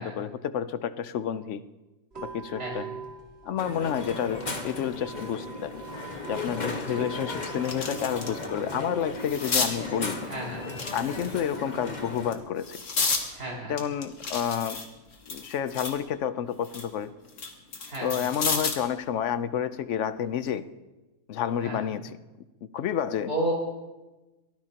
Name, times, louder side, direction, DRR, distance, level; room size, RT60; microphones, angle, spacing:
voice 1, 0.0-1.6 2.2-2.9 3.4-5.7 6.2-10.2 10.9-12.8 13.7-14.8 15.3-17.1 18.0-20.7 21.3-22.1 22.7-23.3, left 9 dB, 60° left, 13 dB, 0.9 m, -30 dB
sound 1, 2.1-16.1, right 6 dB, 45° right, 2.8 m, -47 dB
voice 2, 2.6-3.0 6.9-7.1 10.2-10.8 13.3-13.8 17.8-18.3 21.6-21.9 23.3-23.5, right 1 dB, 90° right, -3 dB, 5.4 m, -33 dB
Crowd, 3.6-12.3, left 2 dB, 30° left, 1.4 m, -36 dB
sound 2, 6.4-6.5 7.0-8.5 8.8-9.7 10.7-11.6 12.2-13.3 13.8-16.0 16.4-18.9 20.3-20.5, left 4 dB, 90° left, 2.2 m, -32 dB
23.5 x 17.5 x 2.9 m, 1.1 s
omnidirectional pair, 1.5 m